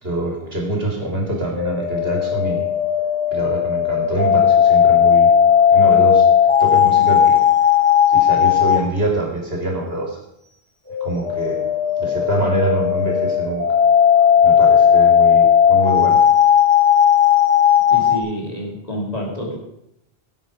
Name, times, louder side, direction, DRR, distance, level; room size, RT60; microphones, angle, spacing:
voice 1, 0.0-2.7 3.3-5.3 5.7-6.3 6.6-7.4 8.1-10.2 11.0-11.6 12.0-13.7 14.4-16.2, right 1 dB, 65° right, 1 dB, 3.1 m, -24 dB
sound 1, 1.5-8.9 10.9-18.2, left 8 dB, 10° left, 5.2 m, -15 dB
voice 2, 17.9-19.6, equal, 40° left, -1 dB, 3.0 m, -28 dB
16.0 x 7.9 x 5.1 m, 0.78 s
omnidirectional pair, 1.1 m